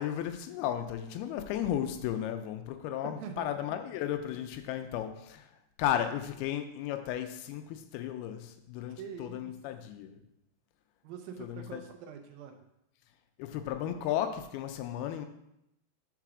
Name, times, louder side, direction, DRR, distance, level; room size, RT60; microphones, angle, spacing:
voice 1, 0.0-5.5 5.8-10.2 11.4-11.8 13.4-15.3, left 10 dB, 85° left, 8 dB, 2.6 m, -34 dB
voice 2, 3.0-3.6 9.0-9.5 11.0-12.6, right 7 dB, 80° right, 5 dB, 2.3 m, -44 dB
5.7 x 4.9 x 6.0 m, 0.82 s
omnidirectional pair, 4.4 m